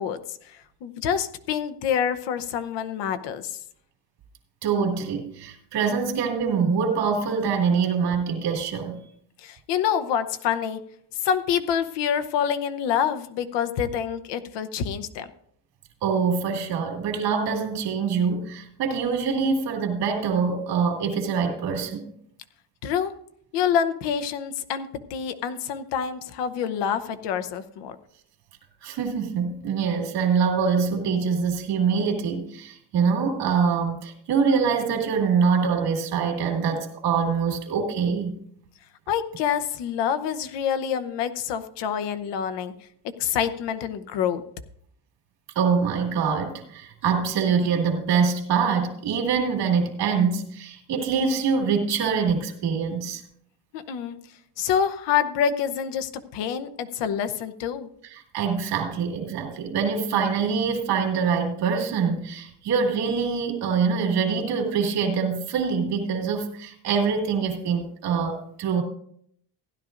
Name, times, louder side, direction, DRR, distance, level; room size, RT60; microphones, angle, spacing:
voice 1, 0.0-3.6 9.4-10.8 11.2-15.3 22.8-23.1 23.5-28.0 39.1-42.7 43.2-44.4 53.7-54.2 54.6-57.9, left 8 dB, 85° left, 10 dB, 0.9 m, -27 dB
voice 2, 4.6-9.0 16.0-22.0 28.8-38.4 45.6-53.2 58.1-68.8, right 6 dB, 80° right, 3 dB, 2.3 m, -24 dB
16.0 x 11.0 x 2.5 m, 0.67 s
cardioid pair, 170°, 41 cm